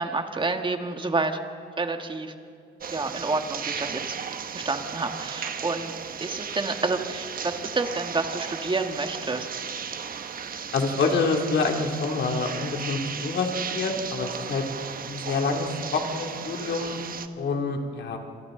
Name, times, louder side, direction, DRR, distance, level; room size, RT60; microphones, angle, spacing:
voice 1, 0.0-1.4 1.8-2.3 2.9-4.2 4.5-5.9 6.2-9.6, right 3 dB, 25° right, 5 dB, 1.8 m, -29 dB
sound 1, 2.8-17.3, right 7 dB, 45° right, 1.1 m, -35 dB
voice 2, 10.7-14.6 15.0-17.0 17.4-18.2, left 4 dB, 60° left, 1 dB, 2.9 m, -27 dB
27.5 x 26.5 x 3.9 m, 2.3 s
cardioid pair, 90°, 20 cm